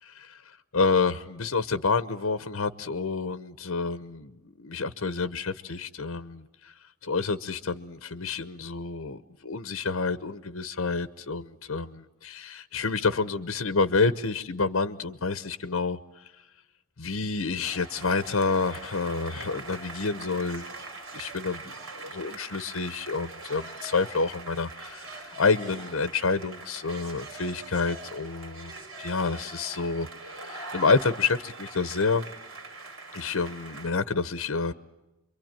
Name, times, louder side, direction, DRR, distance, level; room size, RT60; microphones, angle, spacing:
voice 1, 0.0-6.7 7.0-16.2 17.0-20.7 21.1-21.7 22.0-32.2 33.1-34.7, left 4 dB, 80° left, 0.9 m, -28 dB
sound 1, 17.6-33.9, right 3 dB, 75° right, 4.5 m, -42 dB
27.0 x 23.5 x 9.0 m
head